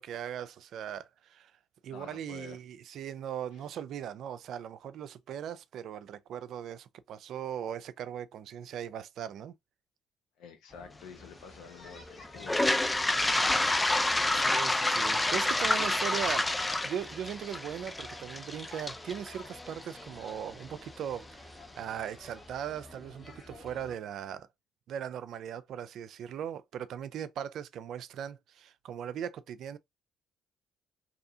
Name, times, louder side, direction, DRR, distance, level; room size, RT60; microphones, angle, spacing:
voice 1, 0.0-1.5 1.8-9.5 14.3-16.5 16.8-24.5 24.9-29.8, right 9 dB, 70° right, 0.3 m, -39 dB
voice 2, 1.9-2.6 10.4-13.7 14.3-14.6, left 6 dB, 85° left, 0.8 m, -50 dB
sound 1, 10.7-24.0, left 2 dB, 30° left, 1.3 m, -52 dB
Toilet flush, 12.4-20.3, left 2 dB, 15° left, 0.3 m, -28 dB
2.7 x 2.4 x 2.6 m
supercardioid pair, 70°, 0 cm